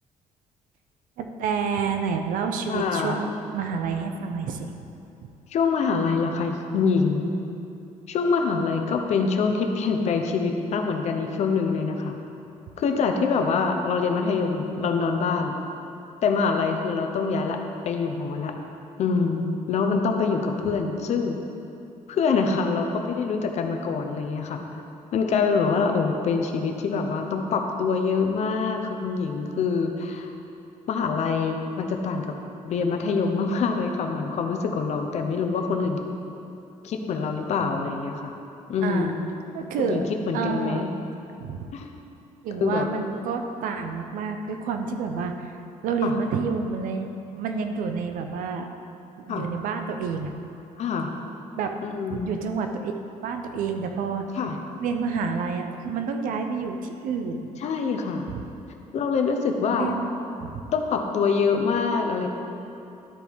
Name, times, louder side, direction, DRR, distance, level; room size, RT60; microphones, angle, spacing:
voice 1, 1.2-4.7 38.8-39.1 39.5-40.1 40.3-40.9 41.4-41.6 42.4-45.6 45.8-47.1 47.4-48.7 49.3-50.3 51.6-51.7 52.1-52.9 53.2-54.3 54.8-57.5 58.3-58.4 59.8-60.1 60.4-60.7, right 5 dB, 80° right, 5 dB, 0.7 m, -29 dB
voice 2, 2.7-3.2 5.5-7.3 8.1-12.2 12.8-15.6 16.2-17.6 17.8-18.5 19.0-21.4 22.1-24.6 25.1-30.3 30.9-32.3 32.6-36.0 36.8-38.3 38.7-39.2 39.8-40.9 41.7-41.9 42.6-42.9 46.0-46.1 49.3-49.5 50.8-51.1 51.8-52.3 54.4-54.6 57.6-58.2 58.9-59.9 60.7-62.3, left 5 dB, 55° left, 4 dB, 0.7 m, -25 dB
12.5 x 4.6 x 3.6 m, 2.8 s
cardioid pair, 145°, 14 cm